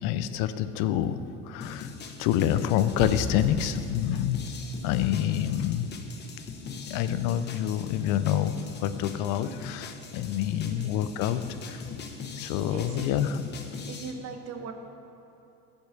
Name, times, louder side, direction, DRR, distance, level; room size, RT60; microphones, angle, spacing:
voice 1, 0.0-1.2 1.5-1.9 2.2-4.4 4.8-5.9 6.9-8.5 8.8-11.8 12.4-13.4, left 11 dB, 75° left, 12 dB, 0.6 m, -27 dB
sound 1, 1.6-14.1, left 5 dB, 35° left, 1.0 m, -41 dB
sound 2, 3.0-5.6, left 1 dB, 5° left, 0.5 m, -37 dB
voice 2, 10.6-11.0 12.7-13.1 13.9-14.7, right 5 dB, 55° right, 6 dB, 1.0 m, -39 dB
10.5 x 5.4 x 6.5 m, 2.9 s
cardioid pair, 135°, 31 cm